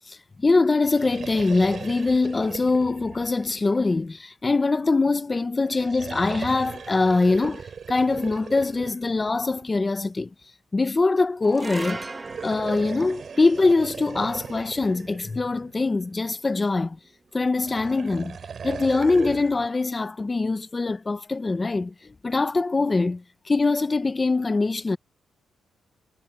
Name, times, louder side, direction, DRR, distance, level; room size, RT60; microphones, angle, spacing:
voice 1, 0.1-10.3 10.7-12.0 12.4-17.0 17.3-18.4 18.6-25.0, left 3 dB, 20° left, 0.6 m, -23 dB
sound 1, 0.7-4.3 5.6-10.0 12.1-16.1 17.4-19.7, right 6 dB, 40° right, 2.8 m, -39 dB
sound 2, 11.4-17.9, right 3 dB, 20° right, 1.5 m, -41 dB
cardioid pair, 160°, 0 cm